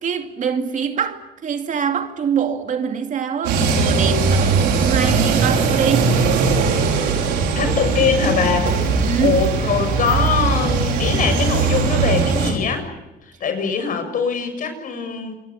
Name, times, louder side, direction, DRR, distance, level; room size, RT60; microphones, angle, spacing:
voice 1, 0.0-6.2 9.0-9.4, right 7 dB, 50° right, 2.5 m, -24 dB
sound 1, 3.4-12.5, right 4 dB, 90° right, 5.9 m, -19 dB
voice 2, 7.6-8.7 9.2-12.9 13.4-15.3, left 6 dB, 55° left, 6.9 m, -22 dB
27.5 x 22.5 x 8.5 m
cardioid pair, 110°, 17 cm